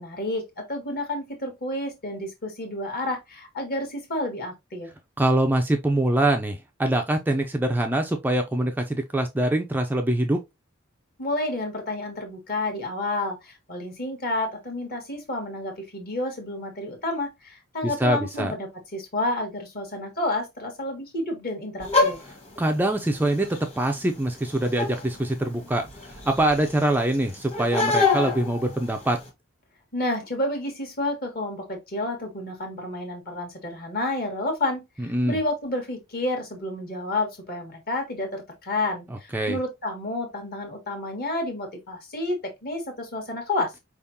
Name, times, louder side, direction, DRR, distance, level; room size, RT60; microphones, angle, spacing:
voice 1, 0.0-4.9 11.2-22.2 29.9-43.7, left 2 dB, 45° left, 1.6 m, -30 dB
voice 2, 5.2-10.4 17.8-18.5 22.6-23.5 23.8-29.2 35.0-35.4 39.3-39.6, right 1 dB, 10° right, 0.4 m, -24 dB
sound 1, 21.8-29.3, left 4 dB, 30° left, 1.4 m, -28 dB
4.6 x 3.6 x 2.7 m
head